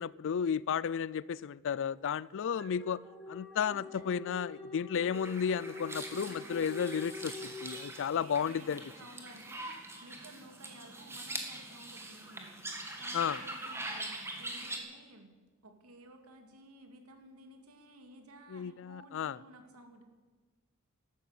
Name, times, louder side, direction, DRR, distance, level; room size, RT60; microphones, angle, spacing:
voice 1, 0.0-3.0 3.3-8.8 13.1-13.4 18.5-19.4, left 7 dB, 60° left, 0.4 m, -33 dB
sound 1, 1.9-8.3, left 2 dB, 5° left, 3.2 m, -47 dB
voice 2, 3.7-4.0 4.9-5.1 6.1-6.7 8.1-12.6 13.0-15.3 15.6-20.0, right 1 dB, 85° right, 2.5 m, -54 dB
sound 2, 5.1-14.8, right 2 dB, 10° right, 2.1 m, -43 dB
13.0 x 12.5 x 8.2 m
head